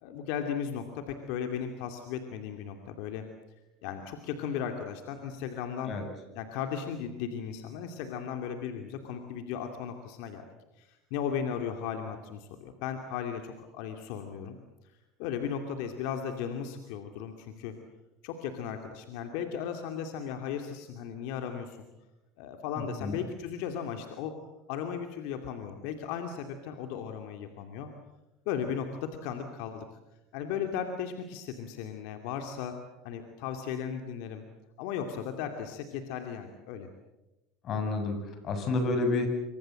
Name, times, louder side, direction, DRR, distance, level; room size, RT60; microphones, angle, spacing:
voice 1, 0.0-3.3 3.8-6.0 6.3-10.4 10.7-14.6 14.8-17.8 18.2-21.8 22.4-24.3 24.7-27.9 28.5-29.9 30.3-32.8 33.0-34.4 34.8-36.9, left 8 dB, 70° left, 5 dB, 2.6 m, -36 dB
voice 2, 22.8-23.2 37.6-39.3, left 3 dB, 50° left, 7 dB, 7.8 m, -30 dB
26.5 x 25.0 x 7.8 m, 1.0 s
supercardioid pair, 100°, 0 cm